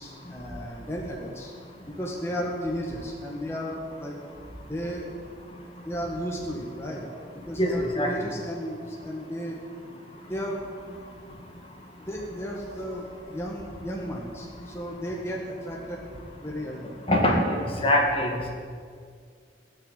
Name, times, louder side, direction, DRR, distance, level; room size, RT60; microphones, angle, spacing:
voice 1, 0.0-1.5 1.8-4.1 4.7-5.1 5.9-7.1 7.5-9.5 10.3-10.6 10.9-11.0 12.0-16.1 16.4-16.9, equal, 15° left, -3 dB, 1.8 m, -34 dB
voice 2, 7.6-8.1 17.1-18.5, left 1 dB, 30° left, 0 dB, 2.0 m, -23 dB
18.0 x 6.6 x 9.2 m, 2.1 s
head